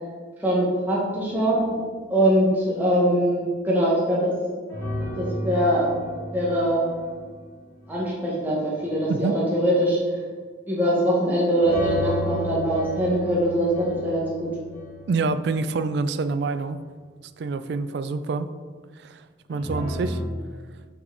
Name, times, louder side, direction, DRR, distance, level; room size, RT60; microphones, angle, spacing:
voice 1, 0.4-1.6 2.1-4.3 5.2-5.9 6.3-6.8 7.9-10.0 10.7-14.5, equal, 10° right, -7 dB, 1.2 m, -22 dB
sound 1, 4.7-8.1 11.6-16.1 19.5-20.3, equal, 15° left, 1.4 m, -33 dB
voice 2, 9.1-9.4 15.1-16.8 17.4-18.5 19.0-19.2 19.5-20.2, right 3 dB, 65° right, 12 dB, 0.3 m, -26 dB
6.0 x 4.1 x 4.8 m, 1.5 s
head